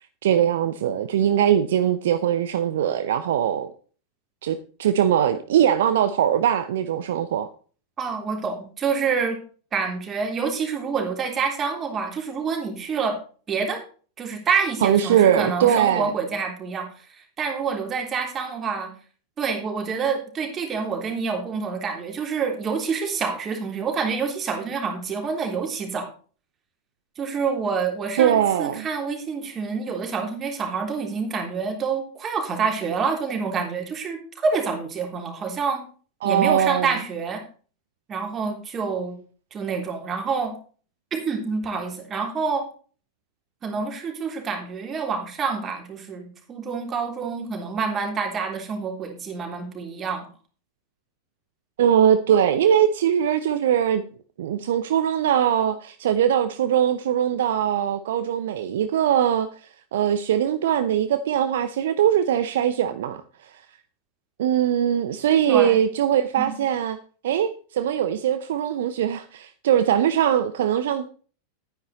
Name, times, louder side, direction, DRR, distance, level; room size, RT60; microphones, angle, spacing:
voice 1, 0.2-3.7 4.4-7.5 14.8-16.1 28.2-28.9 36.2-36.9 51.8-54.0 54.4-63.6 64.4-67.0 67.2-71.1, right 9 dB, 60° right, 0.7 m, -21 dB
voice 2, 8.0-9.4 9.7-13.2 13.5-13.8 14.2-18.9 19.4-26.1 27.2-35.8 36.2-37.4 38.1-39.2 39.5-40.5 41.1-42.7 43.6-50.3 65.5-65.8 66.4-66.6, right 5 dB, 25° right, 3.3 m, -27 dB
11.5 x 9.7 x 4.2 m
figure-of-eight pair, 90°, 0 cm